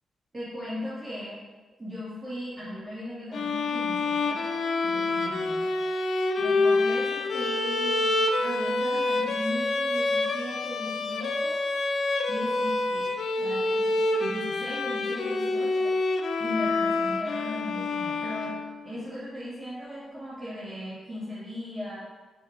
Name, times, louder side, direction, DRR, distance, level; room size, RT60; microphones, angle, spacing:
voice 1, 0.3-1.4 1.8-5.6 6.4-8.1 8.4-11.6 12.3-15.9 16.4-18.6 18.8-22.0, left 1 dB, 25° right, -10 dB, 2.6 m, -37 dB
sound 1, 3.3-19.0, left 2 dB, 65° left, 0.7 m, -27 dB
7.5 x 4.9 x 4.6 m, 1.3 s
cardioid pair, 75°, 0 cm